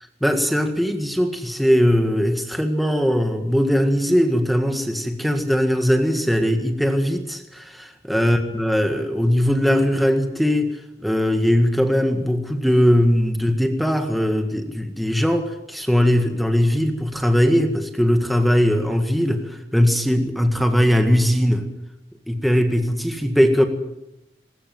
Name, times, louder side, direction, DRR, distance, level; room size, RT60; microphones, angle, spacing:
voice 1, 0.2-10.7 11.0-21.6 22.3-23.6, equal, ahead, 5 dB, 1.8 m, -20 dB
21.0 x 20.5 x 7.8 m, 0.90 s
head